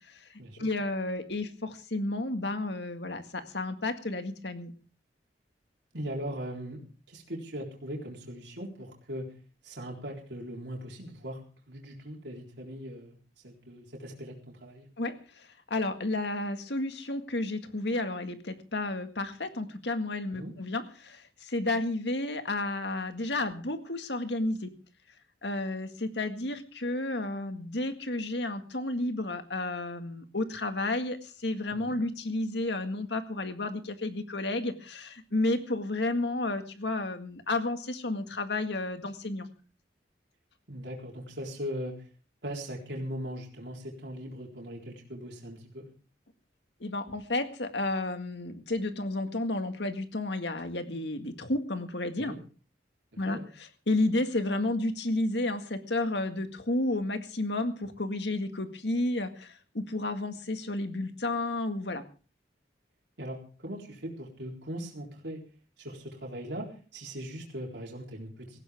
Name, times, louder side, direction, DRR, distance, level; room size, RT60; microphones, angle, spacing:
voice 1, 0.1-4.7 15.0-24.7 25.4-39.5 46.8-52.3 53.2-62.0, left 2 dB, 70° left, 8 dB, 1.9 m, -32 dB
voice 2, 5.9-6.8 7.1-9.3 9.6-11.4 11.7-13.2 13.4-14.9 20.3-20.5 31.7-32.0 40.7-41.9 42.4-45.9 52.2-52.4 53.3-53.5 63.2-65.4 65.8-68.6, equal, 75° right, -1 dB, 4.0 m, -39 dB
18.0 x 16.0 x 3.6 m, 0.38 s
head